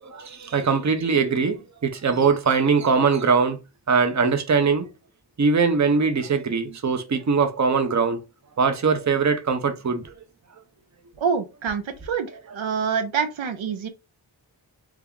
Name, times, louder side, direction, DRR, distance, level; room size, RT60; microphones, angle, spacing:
voice 1, 0.0-3.6 3.9-4.9 5.4-8.2 8.6-10.1, right 5 dB, 40° right, 0.6 m, -21 dB
voice 2, 11.2-13.9, right 6 dB, 80° right, 0.6 m, -26 dB
2.8 x 2.4 x 3.5 m
wide cardioid pair, 50°, 46 cm